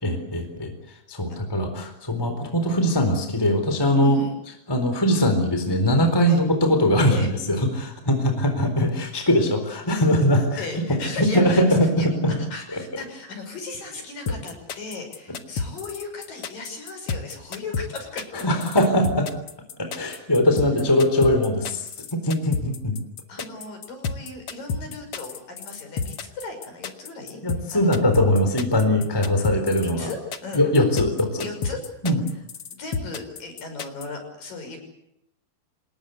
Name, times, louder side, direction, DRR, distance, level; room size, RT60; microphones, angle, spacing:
voice 1, 0.0-0.7 1.1-4.2 4.7-10.8 11.2-11.9 12.2-12.3 18.4-19.3 19.8-23.0 27.4-30.1 30.5-31.4 32.0-32.2, left 1 dB, 5° left, 6 dB, 3.4 m, -21 dB
voice 2, 4.0-4.4 6.3-6.4 7.1-7.3 10.6-12.1 12.4-18.5 23.3-27.4 27.7-28.0 29.8-30.7 31.4-32.2 32.8-34.8, left 3 dB, 50° left, 5 dB, 7.3 m, -36 dB
sound 1, 14.3-34.1, left 5 dB, 70° left, 1.4 m, -30 dB
27.0 x 20.5 x 8.2 m, 0.80 s
omnidirectional pair, 4.9 m